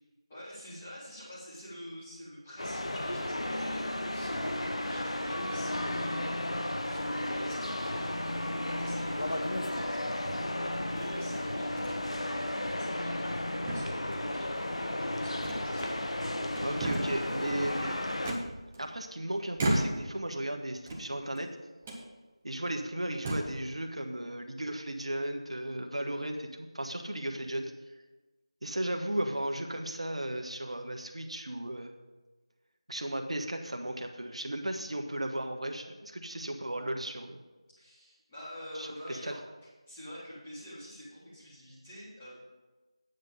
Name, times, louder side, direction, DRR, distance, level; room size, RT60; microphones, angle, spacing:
voice 1, 0.3-11.8 12.3-16.1 37.8-39.4 39.9-42.3, equal, 15° left, -11 dB, 3.6 m, -47 dB
sound 1, 2.6-18.3, left 1 dB, 65° left, 1.0 m, -33 dB
sound 2, 9.1-9.5 10.3-11.0 11.8-12.0 12.4-12.5 13.0-13.4 13.7-14.4 15.4-16.2 16.5-17.3 18.2-19.1 19.5-20.2 20.8-21.5 21.8-22.0 22.7-22.8 23.1-23.6, right 1 dB, 10° right, 0.7 m, -35 dB
voice 2, 16.6-18.0 18.8-21.6 22.4-27.7 28.6-31.9 32.9-37.4 38.7-39.3, right 1 dB, 70° right, 4 dB, 1.2 m, -35 dB
9.4 x 7.9 x 5.4 m, 1.2 s
figure-of-eight pair, 170°, 3 cm